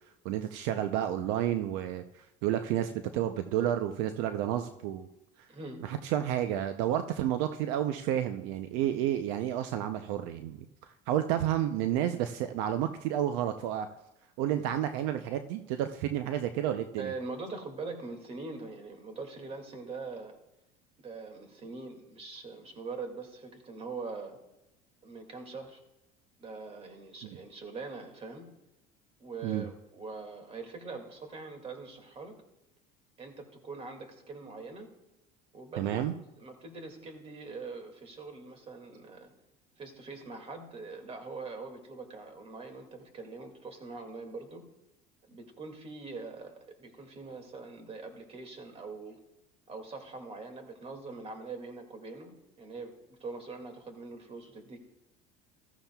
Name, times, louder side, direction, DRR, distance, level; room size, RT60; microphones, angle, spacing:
voice 1, 0.2-5.1 5.8-10.7 11.1-13.9 14.4-17.1 29.4-29.7 35.8-36.1, right 11 dB, 75° right, 8 dB, 0.6 m, -30 dB
voice 2, 5.5-5.8 17.0-20.3 21.0-24.4 25.0-25.8 26.4-28.5 29.2-32.4 33.2-34.9 35.5-36.0 36.4-39.3 39.8-44.6 45.3-49.2 49.7-54.8, right 3 dB, 35° right, 5 dB, 2.2 m, -43 dB
14.5 x 13.5 x 2.3 m, 0.92 s
supercardioid pair, 110°, 19 cm